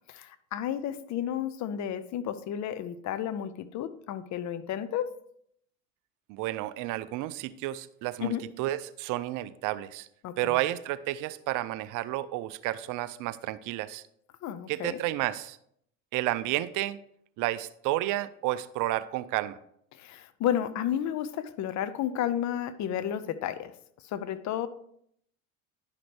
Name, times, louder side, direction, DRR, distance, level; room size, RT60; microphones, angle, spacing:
voice 1, 0.1-5.1 8.2-8.4 10.2-10.6 14.4-15.0 19.9-23.7 24.0-24.7, left 10 dB, 45° left, 13 dB, 0.7 m, -32 dB
voice 2, 6.3-10.1 10.4-14.0 14.7-15.6 16.1-17.0 17.4-19.6, right 15 dB, 50° right, 15 dB, 0.6 m, -31 dB
10.5 x 5.9 x 3.3 m, 0.69 s
hypercardioid pair, 80°, 39 cm